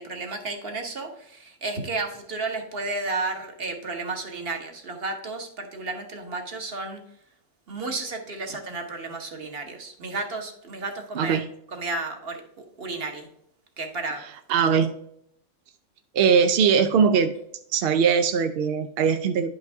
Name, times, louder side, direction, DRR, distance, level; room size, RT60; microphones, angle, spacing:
voice 1, 0.0-7.0 7.7-13.3 13.8-14.2, right 3 dB, 45° right, 4 dB, 1.4 m, -32 dB
voice 2, 14.5-14.9 16.1-17.3 17.7-19.5, right 6 dB, 65° right, 8 dB, 0.6 m, -20 dB
10.5 x 5.3 x 3.5 m, 0.75 s
omnidirectional pair, 1.5 m